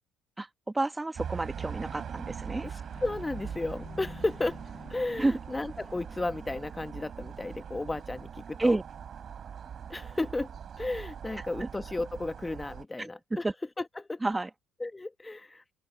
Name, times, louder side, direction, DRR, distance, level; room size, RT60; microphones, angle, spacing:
voice 1, 0.7-2.7 5.2-5.3 8.6-8.8 11.6-11.7 13.0-13.1 13.4-13.5 14.2-14.5, right 2 dB, 15° right, 1.9 m, -29 dB
sound 1, 1.2-12.8, right 8 dB, 50° right, 4.0 m, -42 dB
sound 2, 1.6-6.7, left 5 dB, 35° left, 4.0 m, -51 dB
voice 2, 2.6-4.6 4.9-8.8 9.9-10.5 10.8-13.4 13.8-14.2 14.8-15.6, left 2 dB, 15° left, 1.2 m, -34 dB
open air
supercardioid pair, 70°, 0 cm